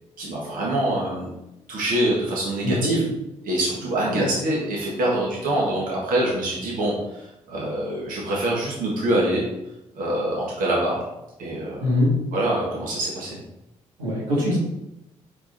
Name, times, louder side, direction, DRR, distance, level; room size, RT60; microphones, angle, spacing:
voice 1, 0.2-1.3 1.7-3.1 3.4-9.4 9.9-11.0 11.4-11.9 12.3-13.4, right 1 dB, 70° right, -4 dB, 1.6 m, -25 dB
voice 2, 2.6-3.0 4.1-4.3 11.8-12.1 14.0-14.6, left 1 dB, 90° right, -5 dB, 1.9 m, -22 dB
4.8 x 4.7 x 4.5 m, 0.91 s
hypercardioid pair, 45°, 15 cm